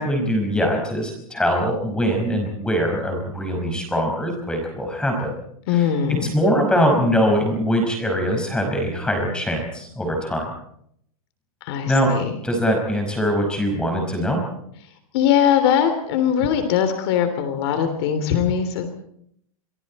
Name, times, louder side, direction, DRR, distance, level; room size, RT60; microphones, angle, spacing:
voice 1, 0.0-5.3 5.7-5.9 6.3-10.5 11.9-14.4, equal, 5° left, 2 dB, 5.3 m, -22 dB
voice 2, 5.7-6.3 11.6-12.3 15.1-18.9, left 8 dB, 45° left, 8 dB, 3.2 m, -21 dB
29.0 x 24.5 x 4.3 m, 0.69 s
supercardioid pair, 160°, 18 cm